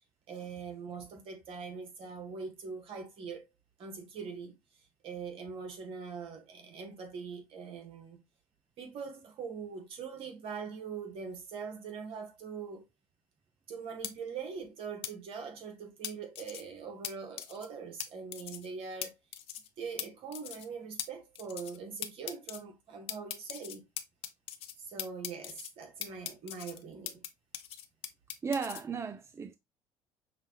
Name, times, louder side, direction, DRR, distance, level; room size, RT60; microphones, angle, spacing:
voice 1, 0.3-3.5 3.8-4.6 5.0-8.2 8.8-12.9 13.7-19.2 19.8-23.8 24.8-27.2, right 5 dB, 60° right, 1.4 m, -42 dB
sound 1, 14.0-14.1 15.0-15.1 16.0-16.6 17.0-17.1 17.4-17.7 18.0-18.1 18.3-18.7 19.0-19.1 19.3-19.7 20.0-20.1 20.3-20.7 21.0-21.1 21.3-21.8 22.0-22.6 23.1-24.7 25.0-25.7 26.0-27.3 27.5-28.8, left 11 dB, 60° left, 0.6 m, -40 dB
voice 2, 28.4-29.6, right 5 dB, 25° right, 0.5 m, -35 dB
5.7 x 2.4 x 3.0 m
hypercardioid pair, 70°, 11 cm